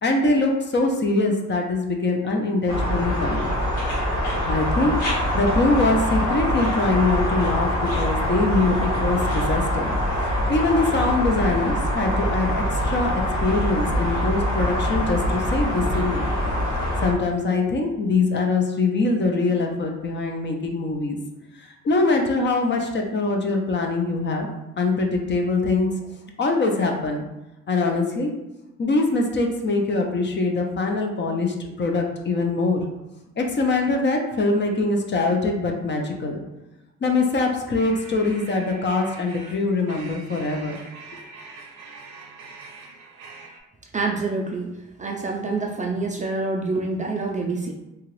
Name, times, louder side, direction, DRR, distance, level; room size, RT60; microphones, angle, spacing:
voice 1, 0.0-3.5 4.4-9.9 10.2-16.3 17.0-21.2 21.6-24.5 24.8-26.1 26.4-27.3 27.7-28.3 28.8-32.8 33.4-36.4 37.0-40.8, left 3 dB, 35° left, 2 dB, 0.6 m, -23 dB
sound 1, 2.7-17.1, equal, 80° left, 1.4 m, -24 dB
sound 2, 37.8-43.6, right 4 dB, 85° right, 0.6 m, -43 dB
voice 2, 43.9-44.7 45.0-47.7, right 3 dB, 25° right, 0 dB, 0.4 m, -26 dB
2.9 x 2.3 x 3.0 m, 0.98 s
cardioid pair, 90°, 30 cm